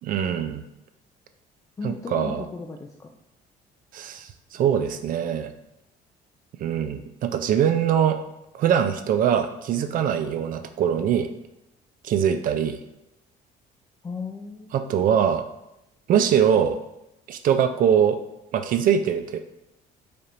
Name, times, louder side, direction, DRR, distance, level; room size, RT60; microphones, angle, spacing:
voice 1, 0.0-0.6 1.8-2.4 3.9-5.5 6.6-8.2 8.5-11.3 12.0-12.8 14.7-15.4 16.1-16.8 17.3-18.2 18.5-19.4, right 8 dB, 55° right, 9 dB, 0.4 m, -22 dB
voice 2, 1.8-3.1 14.0-14.9, left 3 dB, 20° left, 1 dB, 0.3 m, -35 dB
4.2 x 3.3 x 2.5 m, 0.89 s
cardioid pair, 110°, 17 cm